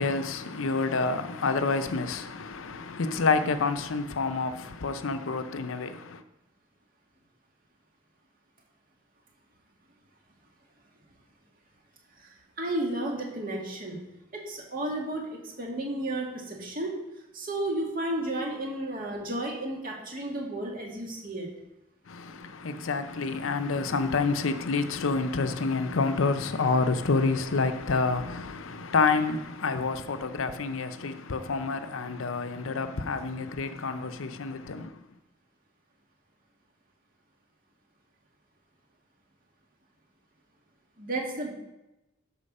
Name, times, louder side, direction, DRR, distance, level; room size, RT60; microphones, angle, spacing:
voice 1, 0.0-6.2 22.1-35.0, left 4 dB, 80° left, 0.6 m, -28 dB
voice 2, 12.2-14.0 14.3-16.9 17.3-21.5 41.0-41.6, right 1 dB, 45° right, 2.0 m, -33 dB
12.5 x 4.5 x 5.5 m
head